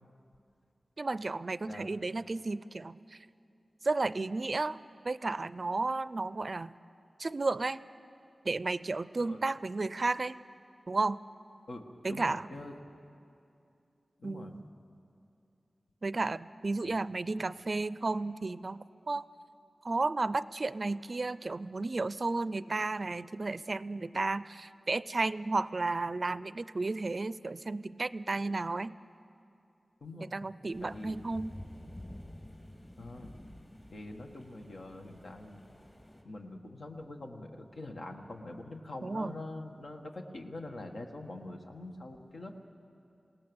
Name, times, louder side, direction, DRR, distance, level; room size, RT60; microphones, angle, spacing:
voice 1, 1.0-3.0 3.8-4.8 5.0-6.7 7.2-7.8 8.5-10.4 10.9-11.2 12.0-12.5 14.2-14.6 16.0-19.2 19.8-28.9 30.2-31.5 39.0-39.3, right 3 dB, 50° right, 16 dB, 0.4 m, -33 dB
voice 2, 11.7-12.7 14.2-14.6 16.8-16.9 30.0-30.3 30.8-31.2 33.0-33.3 33.9-35.6 36.2-42.7, left 2 dB, 75° left, 2 dB, 1.7 m, -44 dB
sound 1, 30.7-36.2, left 1 dB, 35° left, 3.3 m, -50 dB
26.5 x 18.0 x 7.1 m, 2.6 s
wide cardioid pair, 90°, 0 cm